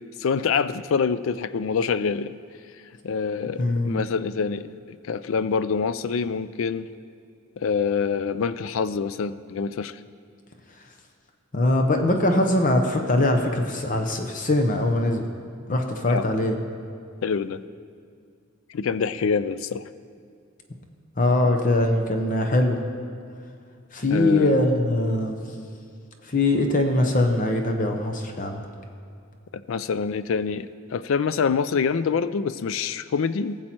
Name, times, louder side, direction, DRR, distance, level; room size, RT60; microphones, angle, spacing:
voice 1, 0.2-2.3 3.0-4.7 5.1-6.9 7.6-10.0 16.1-16.2 17.2-17.6 18.7-19.8 24.1-24.5 29.5-33.6, left 5 dB, 70° left, 15 dB, 0.4 m, -26 dB
voice 2, 3.6-4.0 11.5-15.2 15.7-16.6 21.2-22.8 23.9-25.4 26.2-28.6, left 1 dB, 40° left, 4 dB, 0.8 m, -22 dB
18.0 x 7.4 x 4.4 m, 2.3 s
head